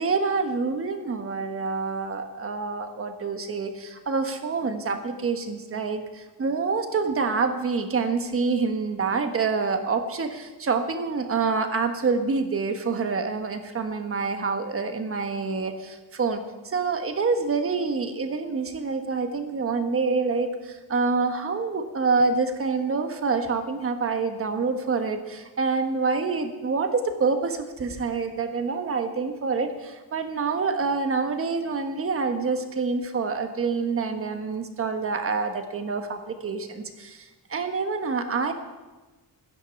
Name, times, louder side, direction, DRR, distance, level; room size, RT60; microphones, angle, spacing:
voice 1, 0.0-38.5, right 4 dB, 35° right, 7 dB, 1.3 m, -27 dB
14.5 x 10.5 x 7.0 m, 1.2 s
wide cardioid pair, 180°, 41 cm